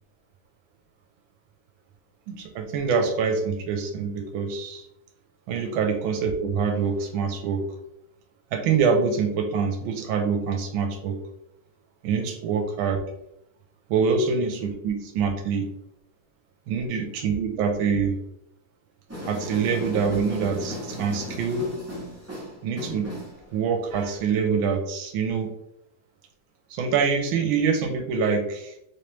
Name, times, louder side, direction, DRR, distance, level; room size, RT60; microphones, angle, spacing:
voice 1, 2.3-4.9 5.5-7.7 8.5-11.2 12.0-13.0 13.9-15.7 16.7-18.2 19.3-21.7 22.6-23.1 23.5-25.5 26.7-28.7, right 5 dB, 90° right, 4 dB, 1.4 m, -25 dB
sound 1, 19.1-24.2, equal, 15° right, 0.5 m, -36 dB
3.3 x 3.3 x 2.9 m, 0.79 s
omnidirectional pair, 2.2 m